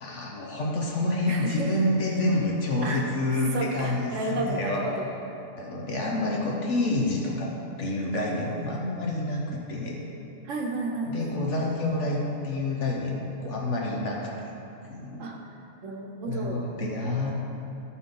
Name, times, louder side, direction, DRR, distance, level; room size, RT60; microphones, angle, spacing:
voice 1, 0.0-4.8 5.5-7.5 7.8-10.0 11.1-14.5 14.9-15.2 16.3-17.3, left 2 dB, 70° left, -2 dB, 1.4 m, -28 dB
voice 2, 1.3-1.7 2.8-3.1 3.5-5.1 10.4-11.4 15.2-15.4 15.8-16.6, right 2 dB, 85° right, 1 dB, 1.4 m, -32 dB
13.5 x 5.7 x 3.8 m, 3.0 s
omnidirectional pair, 1.3 m